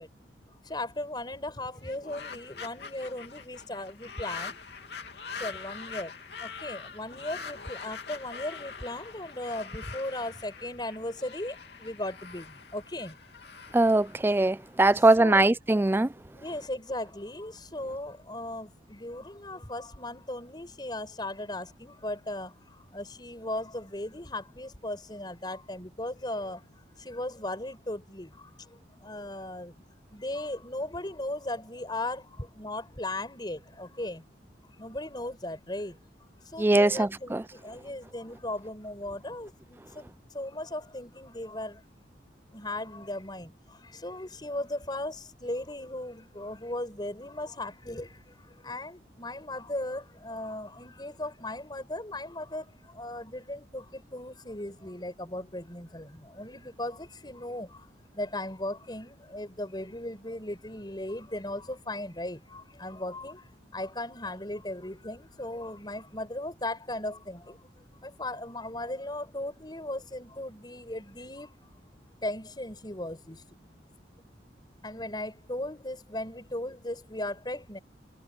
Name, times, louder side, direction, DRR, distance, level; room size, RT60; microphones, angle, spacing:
voice 1, 0.7-4.5 5.4-6.1 6.4-11.6 11.8-12.5 12.7-13.1 15.2-15.5 16.4-22.5 22.9-26.6 27.1-28.3 29.0-29.7 30.1-32.3 32.6-34.2 34.8-35.9 36.5-40.1 40.4-41.8 42.5-43.5 44.0-48.1 48.6-52.6 53.0-53.8 54.1-56.1 56.4-57.7 58.2-63.4 63.7-67.4 68.0-71.5 72.2-73.4 74.8-77.8, left 1 dB, 25° left, 5.3 m, -37 dB
sound 1, 1.8-14.9, left 5 dB, 65° left, 3.1 m, -43 dB
voice 2, 13.7-16.1 36.6-37.4, right 2 dB, 10° right, 0.3 m, -21 dB
head